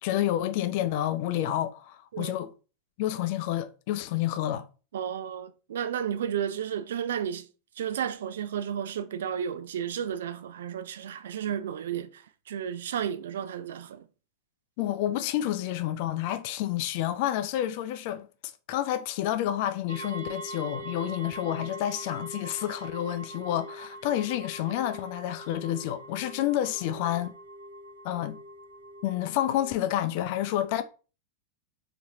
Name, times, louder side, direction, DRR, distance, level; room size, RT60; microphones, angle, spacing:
voice 1, 0.0-2.5 3.0-4.7 14.8-18.3 18.7-27.3 28.0-28.4 29.0-30.8, left 12 dB, 45° left, 0.5 m, -29 dB
voice 2, 4.9-7.5 7.8-14.1, right 9 dB, 60° right, 0.4 m, -33 dB
sound 1, 19.9-29.7, right 1 dB, 75° right, 0.9 m, -43 dB
4.2 x 2.8 x 3.5 m
figure-of-eight pair, 90°, 0 cm